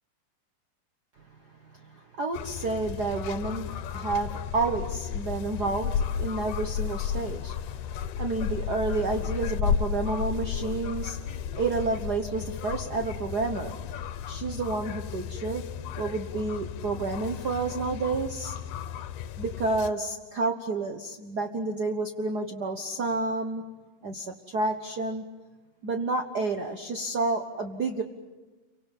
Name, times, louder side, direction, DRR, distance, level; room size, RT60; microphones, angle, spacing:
voice 1, 1.7-11.2 11.5-13.8 14.3-15.6 16.0-18.5 19.4-23.6 24.0-25.2 25.8-28.0, right 3 dB, 75° right, 5 dB, 0.9 m, -30 dB
sound 1, 2.3-19.9, left 8 dB, 80° left, 2.5 m, -33 dB
28.5 x 25.0 x 7.4 m, 1.2 s
omnidirectional pair, 3.8 m